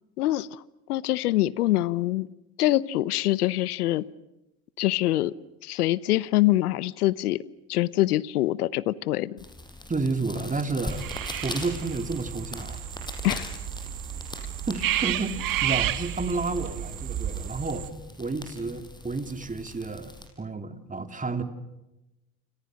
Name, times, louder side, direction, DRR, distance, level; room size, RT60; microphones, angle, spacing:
voice 1, 0.2-0.6 0.9-2.3 2.6-4.1 4.8-5.3 5.6-7.4 7.7-9.4 13.2-13.6, left 16 dB, 85° left, 20 dB, 0.9 m, -24 dB
sound 1, 9.4-20.3, left 1 dB, 10° left, 5.7 m, -41 dB
voice 2, 9.9-11.0 11.4-12.8 14.7-17.9 18.2-20.1 20.4-21.4, right 3 dB, 15° right, 8 dB, 2.9 m, -31 dB
sound 2, 10.9-17.9, right 12 dB, 45° right, 1.8 m, -32 dB
29.0 x 26.5 x 6.4 m, 0.95 s
hypercardioid pair, 75°, 44 cm